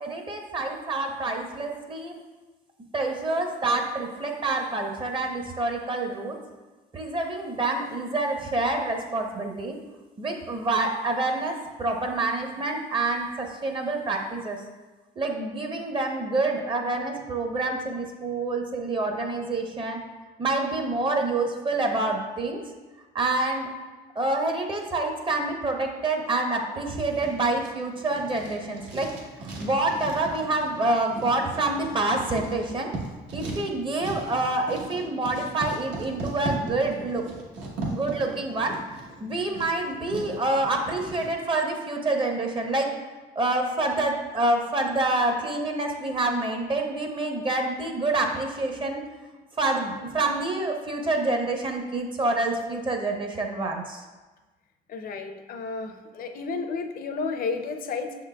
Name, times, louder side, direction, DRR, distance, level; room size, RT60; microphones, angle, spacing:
voice 1, 0.0-2.2 2.9-6.4 6.9-9.8 10.2-14.6 15.2-20.0 20.4-22.6 23.1-23.7 24.2-29.1 29.6-32.9 33.3-37.2 37.9-38.7 39.2-42.9 43.4-49.0 49.6-54.0, right 2 dB, 30° right, 3 dB, 0.6 m, -27 dB
Writing, 26.9-41.3, right 2 dB, 80° right, 1.0 m, -38 dB
voice 2, 54.9-58.1, left 4 dB, 50° left, 6 dB, 0.5 m, -32 dB
6.1 x 3.8 x 2.2 m, 1.2 s
cardioid pair, 100°, 18 cm